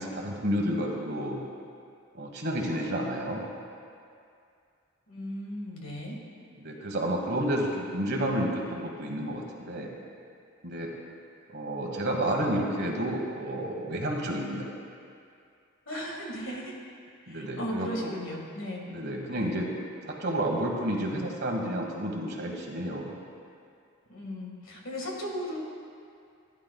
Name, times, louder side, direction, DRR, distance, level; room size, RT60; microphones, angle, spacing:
voice 1, 0.0-1.4 2.1-3.5 6.6-9.9 10.6-10.9 11.5-14.7 17.3-18.1 18.9-19.7 20.1-23.2, right 1 dB, 50° right, 0 dB, 1.3 m, -30 dB
voice 2, 5.1-6.2 15.9-16.7 17.3-18.9 19.4-19.7 24.1-25.6, equal, 70° left, -1 dB, 1.8 m, -36 dB
15.5 x 10.5 x 2.3 m, 2.3 s
head